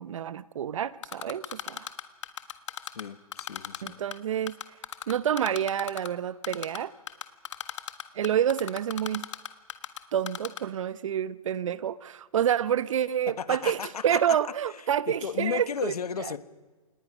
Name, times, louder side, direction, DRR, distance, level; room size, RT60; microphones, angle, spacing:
voice 1, 0.0-1.9 3.8-4.6 5.1-6.9 8.1-9.3 10.1-16.3, right 9 dB, 55° right, 0.8 m, -28 dB
Typing, 1.0-3.0 3.3-4.2 4.5-6.1 6.4-6.8 7.1-10.0 10.3-10.6, left 10 dB, 55° left, 1.5 m, -35 dB
voice 2, 2.9-4.0 13.4-14.4 15.1-16.4, left 7 dB, 80° left, 1.4 m, -34 dB
27.5 x 19.5 x 6.2 m
hypercardioid pair, 160°, 19 cm